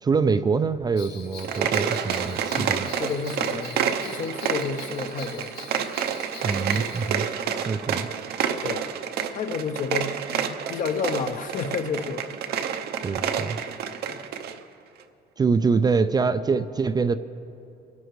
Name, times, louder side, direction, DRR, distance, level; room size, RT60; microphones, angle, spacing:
voice 1, 0.0-2.9 6.4-7.3 7.7-8.1 13.0-13.6 15.4-17.2, right 5 dB, 25° right, 11 dB, 0.4 m, -24 dB
Bell, 1.0-7.1, left 6 dB, 80° left, 1.2 m, -45 dB
sound 1, 1.3-14.6, right 7 dB, 70° right, 0.7 m, -29 dB
voice 2, 2.5-5.5 7.9-8.1 8.6-8.9 9.3-12.3 14.0-14.3, left 6 dB, 50° left, 8 dB, 0.8 m, -31 dB
23.0 x 11.5 x 3.2 m, 2.6 s
cardioid pair, 110°, 17 cm